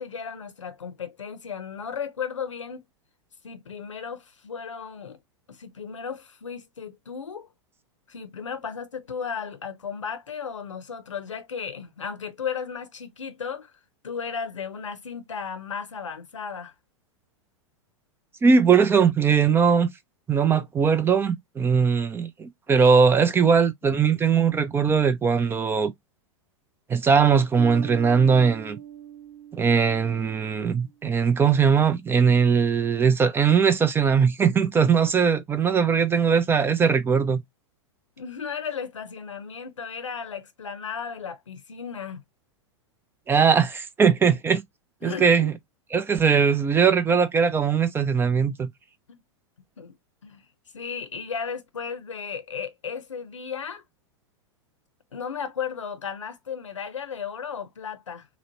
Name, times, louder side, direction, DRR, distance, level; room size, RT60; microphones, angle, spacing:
voice 1, 0.0-2.9 3.4-5.2 5.5-7.5 8.1-13.7 14.0-16.7 23.8-24.1 38.2-42.2 45.0-45.5 49.1-49.2 49.8-50.0 50.2-50.4 50.7-53.8 55.1-58.3, left 6 dB, 80° left, 0.7 m, -35 dB
voice 2, 18.4-19.9 20.3-25.9 26.9-28.8 29.5-37.4 43.3-44.6 45.0-45.5 45.9-48.7, right 6 dB, 15° right, 0.4 m, -20 dB
sound 1, 27.6-30.9, right 10 dB, 45° right, 0.8 m, -42 dB
2.9 x 2.0 x 2.9 m
figure-of-eight pair, 95°, 16 cm